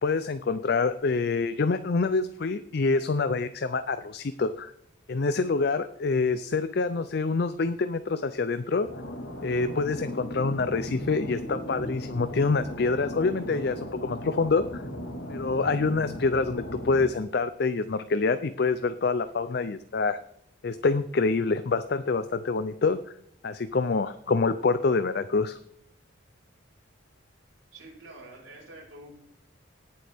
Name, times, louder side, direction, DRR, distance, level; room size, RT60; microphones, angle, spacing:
voice 1, 0.0-4.7 5.1-8.9 9.4-14.8 15.3-20.2 20.6-23.0 23.4-25.6, left 4 dB, 55° left, 12 dB, 0.5 m, -26 dB
sound 1, 8.8-17.1, equal, 75° left, 1.8 m, -37 dB
voice 2, 27.7-29.1, right 2 dB, 75° right, -4 dB, 5.6 m, -47 dB
18.0 x 7.7 x 3.5 m, 0.72 s
head